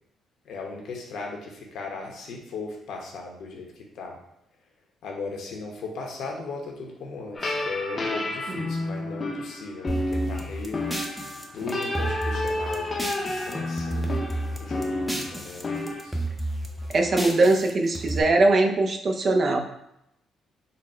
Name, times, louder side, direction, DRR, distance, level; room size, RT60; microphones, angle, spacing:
voice 1, 0.4-4.2 5.0-10.8 11.5-16.2, left 3 dB, 75° left, 0 dB, 0.9 m, -37 dB
sound 1, 7.3-16.0, left 2 dB, 35° left, 0.6 m, -30 dB
sound 2, 9.9-13.5 13.8-15.6 15.9-18.2, right 1 dB, 5° right, 0.6 m, -31 dB
voice 2, 16.9-19.6, right 2 dB, 45° right, 4 dB, 0.5 m, -21 dB
4.0 x 2.1 x 4.3 m, 0.80 s
cardioid pair, 90°, 0 cm